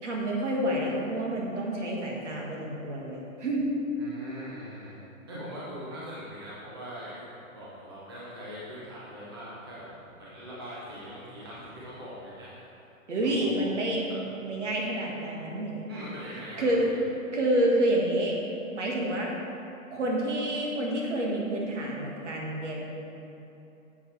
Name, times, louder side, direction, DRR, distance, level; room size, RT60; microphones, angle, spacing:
voice 1, 0.0-3.7 13.1-14.1 14.4-15.8 16.6-16.8 17.3-18.3 18.7-19.3 19.9-22.8, right 1 dB, 55° right, -2 dB, 1.9 m, -28 dB
voice 2, 4.0-5.0 5.3-9.9 10.1-12.5 13.2-13.7 15.9-17.0, equal, 20° right, -9 dB, 0.7 m, -41 dB
10.0 x 7.6 x 3.4 m, 2.9 s
hypercardioid pair, 180°, 42 cm